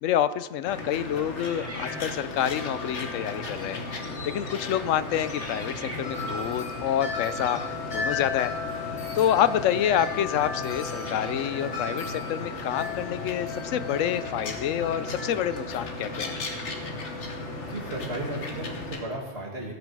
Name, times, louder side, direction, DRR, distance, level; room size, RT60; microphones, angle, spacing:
voice 1, 0.0-3.8 4.2-8.5 9.1-16.4, left 10 dB, 85° left, 14 dB, 1.0 m, -27 dB
sound 1, 0.6-19.0, left 2 dB, 65° left, 1.6 m, -36 dB
Wind chime, 1.0-18.9, left 4 dB, 50° left, 2.3 m, -38 dB
sound 2, 1.4-2.5 3.3-3.6 4.2-4.6 5.3-6.5 9.2-9.3 10.8-11.6, right 1 dB, 10° right, 1.7 m, -44 dB
voice 2, 17.6-19.7, right 2 dB, 55° right, -1 dB, 2.6 m, -35 dB
16.5 x 8.4 x 4.8 m, 1.2 s
omnidirectional pair, 1.3 m